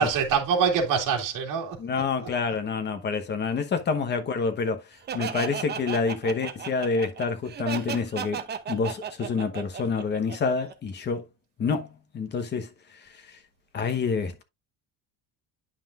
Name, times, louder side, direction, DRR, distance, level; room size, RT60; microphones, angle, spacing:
voice 1, 0.0-2.3, right 6 dB, 60° right, 2.4 m, -25 dB
voice 2, 1.8-4.8 5.1-8.4 8.7-11.3 11.6-13.4 13.7-14.4, left 5 dB, 30° left, 1.1 m, -28 dB
Laughter, 5.1-10.7, right 7 dB, 25° right, 0.7 m, -34 dB
9.9 x 5.7 x 2.4 m
cardioid pair, 165°, 37 cm